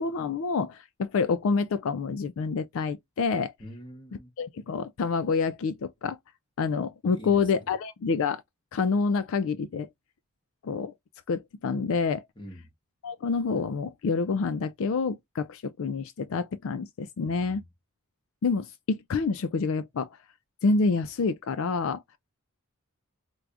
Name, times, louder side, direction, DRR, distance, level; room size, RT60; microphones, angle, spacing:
voice 1, 0.0-3.5 4.4-6.2 6.6-8.4 8.7-9.9 10.6-10.9 11.3-12.2 13.0-17.6 18.4-20.1 20.6-22.0, left 4 dB, 60° left, 0.4 m, -27 dB
voice 2, 3.6-4.3 7.0-7.4 12.4-12.7 17.2-17.6, equal, 20° left, 1.1 m, -44 dB
4.7 x 2.2 x 2.5 m
head